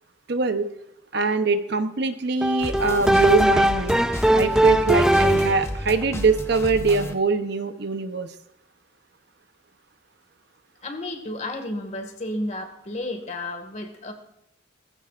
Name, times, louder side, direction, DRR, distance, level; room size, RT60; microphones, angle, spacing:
voice 1, 0.3-0.7 1.1-4.0 4.3-8.3, right 4 dB, 55° right, 8 dB, 0.9 m, -23 dB
sound 1, 2.4-5.8, equal, 5° right, 0.4 m, -20 dB
sound 2, 2.6-7.1, left 1 dB, 15° left, 1.0 m, -33 dB
voice 2, 10.8-14.1, left 1 dB, 35° left, 5 dB, 2.0 m, -32 dB
18.5 x 15.5 x 2.5 m, 0.78 s
head